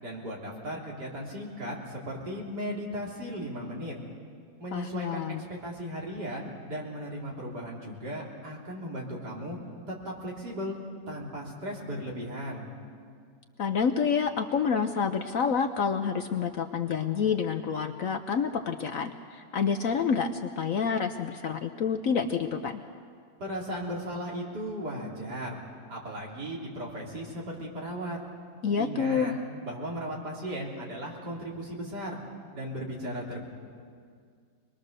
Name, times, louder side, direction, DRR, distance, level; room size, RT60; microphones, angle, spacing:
voice 1, 0.0-3.9 4.6-9.6 9.9-10.8 11.1-12.7 23.4-25.6 25.9-28.2 28.8-29.3 29.6-32.2 32.5-33.5, equal, 65° right, -3 dB, 3.9 m, -36 dB
voice 2, 4.7-5.4 13.6-22.8 28.6-29.3, left 6 dB, 60° left, 7 dB, 1.0 m, -28 dB
24.5 x 21.0 x 6.7 m, 2.1 s
omnidirectional pair, 1.9 m